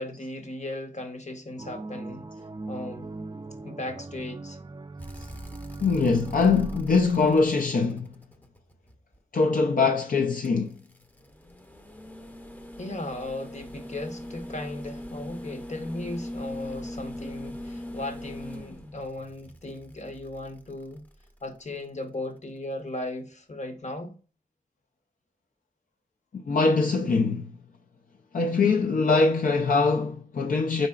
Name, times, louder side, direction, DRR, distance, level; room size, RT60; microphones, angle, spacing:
voice 1, 0.0-2.3 2.7-3.1 3.6-4.6 12.8-21.0 21.4-24.2, left 2 dB, 50° left, 0.9 m, -36 dB
sound 1, 1.6-6.8, right 2 dB, 30° right, 0.4 m, -40 dB
sound 2, 5.0-9.2 10.4-21.6 23.2-23.3, equal, 10° left, 0.6 m, -41 dB
voice 2, 5.8-8.1 9.3-10.8 26.4-27.6 28.3-30.9, left 4 dB, 70° left, 0.4 m, -23 dB
4.6 x 4.0 x 2.3 m
wide cardioid pair, 60°, 15 cm